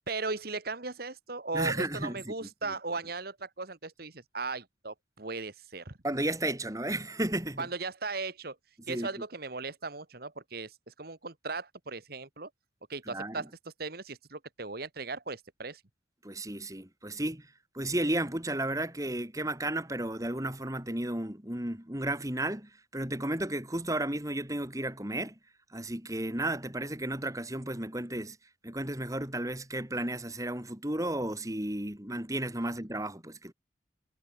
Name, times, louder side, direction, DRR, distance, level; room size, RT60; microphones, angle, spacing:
voice 1, 0.1-5.9 7.6-8.6 8.9-12.5 12.9-13.5 13.8-15.8, right 3 dB, 55° right, 1.8 m, -37 dB
voice 2, 1.5-2.7 6.0-7.7 8.9-9.1 13.1-13.4 16.2-25.3 25.7-28.4 28.6-33.5, right 1 dB, 15° right, 3.1 m, -33 dB
head